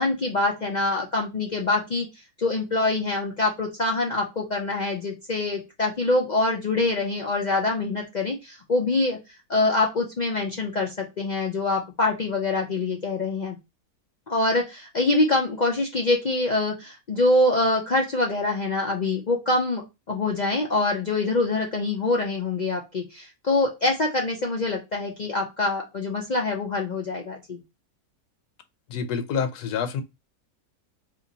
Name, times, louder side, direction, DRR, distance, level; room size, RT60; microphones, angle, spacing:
voice 1, 0.0-2.1 2.4-9.2 9.5-13.6 14.3-19.8 20.1-27.6, left 2 dB, 65° left, 0.4 m, -25 dB
voice 2, 28.9-30.0, left 6 dB, 85° left, 1.2 m, -27 dB
2.9 x 2.6 x 3.8 m
omnidirectional pair, 1.6 m